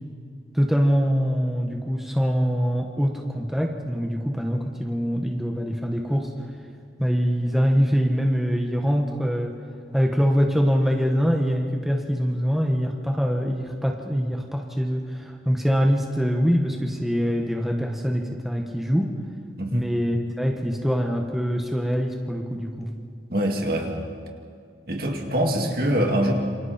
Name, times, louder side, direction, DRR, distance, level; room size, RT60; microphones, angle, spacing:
voice 1, 0.5-6.3 7.0-9.5 9.9-19.1 19.7-22.9, equal, ahead, 1 dB, 1.5 m, -24 dB
voice 2, 23.3-23.9 24.9-26.3, right 1 dB, 55° right, 2 dB, 2.7 m, -23 dB
28.0 x 26.5 x 4.4 m, 2.2 s
head